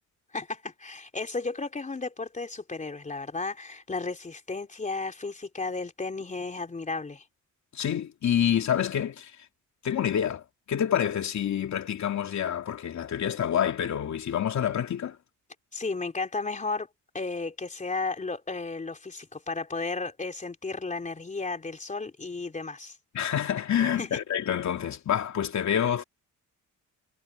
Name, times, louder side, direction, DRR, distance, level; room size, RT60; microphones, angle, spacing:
voice 1, 0.3-7.2 15.7-16.9 17.1-23.0 24.0-24.2, left 3 dB, 20° left, 3.5 m, -34 dB
voice 2, 7.7-9.3 9.8-15.2 23.1-26.0, left 9 dB, 55° left, 3.0 m, -27 dB
cardioid pair, 115°, 33 cm